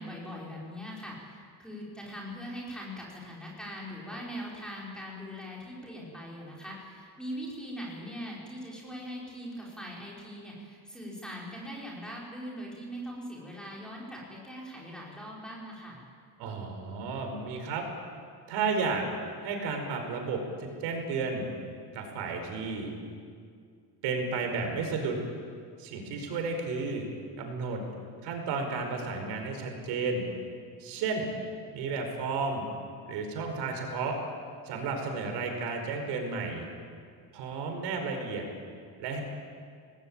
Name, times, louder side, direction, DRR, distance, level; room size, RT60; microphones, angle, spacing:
voice 1, 0.0-16.0, equal, ahead, -4 dB, 5.0 m, -41 dB
voice 2, 16.4-17.8 18.5-19.0 19.4-21.6 21.9-22.9 24.0-25.2 25.8-27.1 27.4-27.8 28.2-30.3 30.8-31.3 31.7-32.6 33.1-34.2 34.6-36.6 37.3-38.4 39.0-39.2, right 4 dB, 75° right, 4 dB, 5.1 m, -32 dB
27.5 x 19.5 x 8.9 m, 2.2 s
cardioid pair, 180°, 41 cm